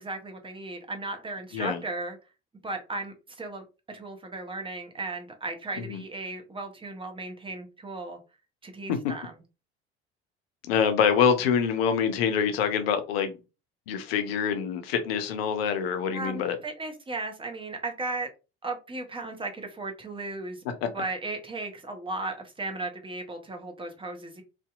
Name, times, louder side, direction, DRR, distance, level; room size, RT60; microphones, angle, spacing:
voice 1, 0.0-2.2 2.6-8.2 8.6-9.3 16.1-18.3 18.6-20.7 20.9-24.4, right 2 dB, 15° right, 0.7 m, -36 dB
voice 2, 10.7-13.4 13.9-16.6 20.8-20.9, left 7 dB, 70° left, 0.5 m, -25 dB
2.6 x 2.2 x 2.4 m
figure-of-eight pair, 55°, 32 cm